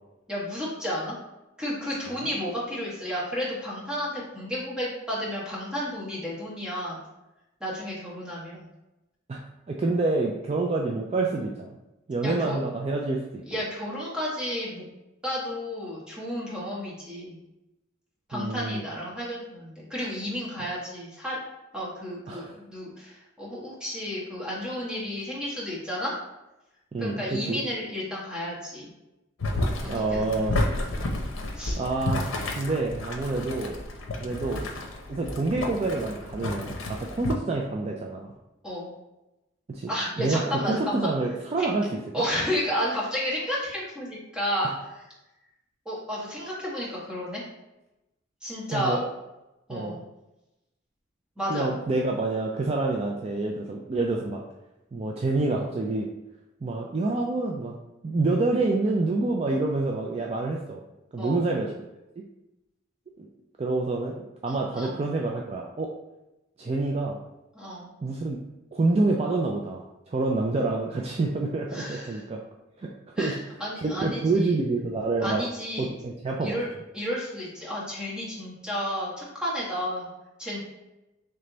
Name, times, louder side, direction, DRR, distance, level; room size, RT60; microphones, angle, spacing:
voice 1, 0.3-1.1 1.6-7.0 7.6-8.7 12.2-12.6 13.5-14.8 15.2-17.4 18.3-21.4 21.7-26.2 27.0-28.9 29.8-30.3 31.5-31.8 38.6-38.9 39.9-41.1 41.6-41.8 42.1-45.0 45.8-47.4 48.4-49.0 49.7-50.0 51.4-51.7 61.2-61.5 64.5-65.0 67.5-67.9 71.7-72.2 73.2-74.6 75.2-75.9 76.4-76.7 76.9-80.1 80.4-80.6, equal, 5° right, -7 dB, 1.2 m, -32 dB
voice 2, 9.3-11.7 12.1-13.6 18.3-18.8 22.3-22.6 26.9-27.6 29.8-30.6 31.8-33.8 34.2-34.8 35.1-38.3 39.7-39.9 40.2-41.9 48.7-49.0 49.7-50.0 51.5-54.4 54.9-56.1 56.6-57.7 58.0-60.8 61.1-61.7 63.2-63.3 63.6-64.1 64.4-65.9 66.6-67.2 68.0-68.4 68.7-72.4 72.8-72.9 73.2-73.4 73.8-75.4 75.8-76.6, right 3 dB, 30° right, -1 dB, 0.3 m, -27 dB
Boiling, 29.4-37.3, left 2 dB, 90° left, 0.6 m, -31 dB
3.3 x 3.3 x 3.8 m, 0.96 s
head